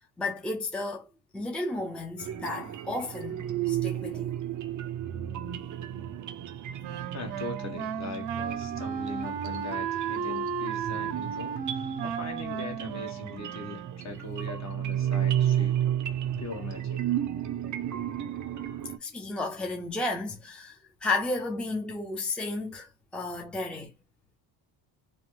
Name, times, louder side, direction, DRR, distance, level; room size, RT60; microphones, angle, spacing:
voice 1, 0.2-1.1 1.3-4.3 19.0-23.9, left 2 dB, ahead, 0.7 m, -33 dB
sound 1, 2.2-19.0, right 11 dB, 45° right, 0.6 m, -33 dB
Wind instrument woodwind instrument, 6.8-14.2, right 7 dB, 70° right, 0.8 m, -34 dB
voice 2, 7.1-15.8 16.4-17.1, left 4 dB, 40° left, 1.3 m, -41 dB
3.0 x 2.2 x 3.1 m
supercardioid pair, 90°, 44 cm